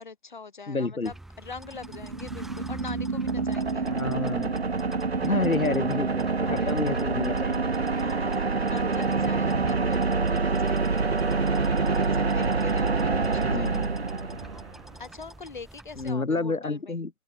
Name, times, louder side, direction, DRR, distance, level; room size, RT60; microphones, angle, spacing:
voice 1, 0.0-3.9 6.4-7.2 7.9-11.5 11.9-13.9 15.0-17.0, left 5 dB, 35° left, 4.0 m, -43 dB
voice 2, 0.7-1.1 3.9-4.5 5.2-7.7 13.4-13.9 16.0-17.1, left 3 dB, 75° left, 2.4 m, -29 dB
sound 1, 1.0-16.1, right 2 dB, ahead, 5.6 m, -47 dB
sound 2, 1.7-14.8, right 4 dB, 50° right, 0.8 m, -26 dB
open air
figure-of-eight pair, 170°, 42 cm